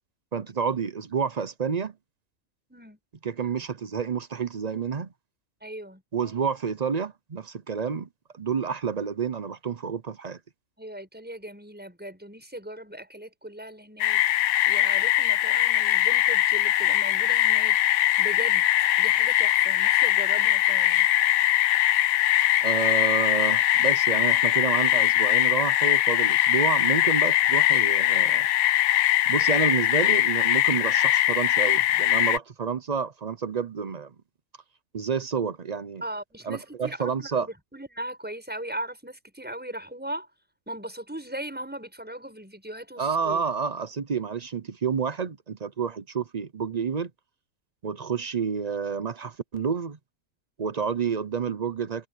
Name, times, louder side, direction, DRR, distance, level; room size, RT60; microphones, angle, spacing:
voice 1, 0.3-1.9 3.2-5.1 6.1-8.1 8.3-10.4 22.6-28.5 29.3-34.1 34.9-36.0 36.4-37.5 43.0-47.1 47.8-50.0 50.6-52.1, right 6 dB, 40° right, 0.6 m, -29 dB
voice 2, 5.6-6.0 10.8-18.7 19.0-21.1 36.0-40.3 40.7-43.4, right 1 dB, 5° right, 7.2 m, -39 dB
sound 1, 14.0-32.4, left 13 dB, 80° left, 1.0 m, -22 dB
omnidirectional pair, 1.5 m